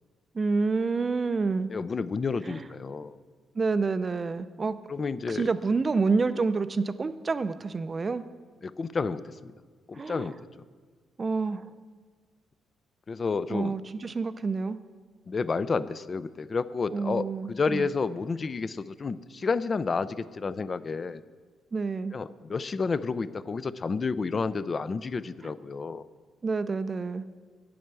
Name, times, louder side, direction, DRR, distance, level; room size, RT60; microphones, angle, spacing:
voice 1, 0.3-1.7 2.4-2.6 3.6-4.8 5.3-8.2 9.9-10.3 11.2-11.7 13.5-14.8 16.9-17.9 21.7-22.2 26.4-27.3, right 4 dB, 35° right, 12 dB, 0.4 m, -28 dB
voice 2, 1.7-3.2 4.9-5.5 8.6-9.5 9.9-10.4 13.1-13.7 15.3-21.2 22.1-26.0, left 4 dB, 35° left, 15 dB, 0.4 m, -30 dB
8.7 x 7.7 x 6.8 m, 1.5 s
cardioid pair, 90°, 0 cm